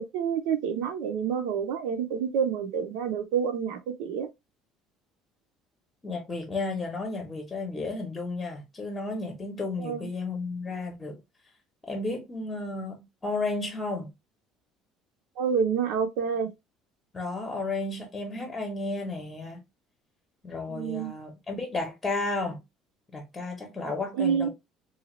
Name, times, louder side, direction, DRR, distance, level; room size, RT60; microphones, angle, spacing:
voice 1, 0.0-4.3 9.8-10.1 15.4-16.5 20.7-21.1 24.1-24.5, right 7 dB, 85° right, 0.7 m, -28 dB
voice 2, 6.0-11.2 11.9-14.1 17.1-19.6 20.4-22.6 23.1-24.5, left 3 dB, 15° left, 0.8 m, -33 dB
2.7 x 2.4 x 2.9 m
cardioid pair, 140°, 0 cm